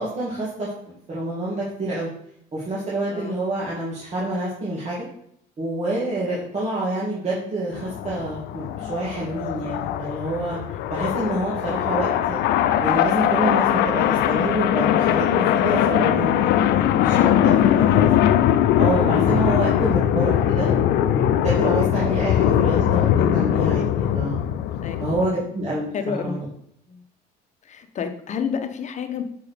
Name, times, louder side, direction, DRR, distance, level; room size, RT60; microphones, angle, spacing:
voice 1, 0.0-2.1 2.5-5.0 5.6-10.6 10.9-12.4 12.8-18.1 18.8-24.4 25.0-26.4, right 2 dB, 40° right, -7 dB, 2.4 m, -27 dB
sound 1, 7.7-25.3, left 11 dB, 85° left, 0.5 m, -20 dB
voice 2, 19.3-19.6 24.8-25.0 25.3-25.4 25.9-26.3 26.9-27.0 27.7-29.2, left 7 dB, 45° left, 7 dB, 1.0 m, -30 dB
7.1 x 4.6 x 5.1 m, 0.69 s
cardioid pair, 110°, 17 cm